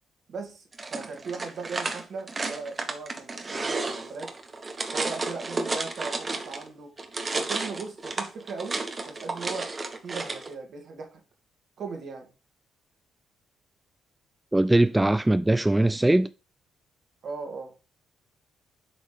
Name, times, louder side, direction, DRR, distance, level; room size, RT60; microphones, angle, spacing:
voice 1, 0.3-0.6 0.9-4.3 4.9-6.9 7.3-9.7 10.0-11.1 11.8-12.3 17.2-17.7, right 4 dB, 60° right, 2.3 m, -38 dB
sound 1, 0.7-6.7 7.0-10.5, right 3 dB, 35° right, 1.3 m, -32 dB
voice 2, 14.5-16.3, right 1 dB, 10° right, 0.4 m, -21 dB
7.9 x 4.2 x 5.1 m
hypercardioid pair, 45°, 0 cm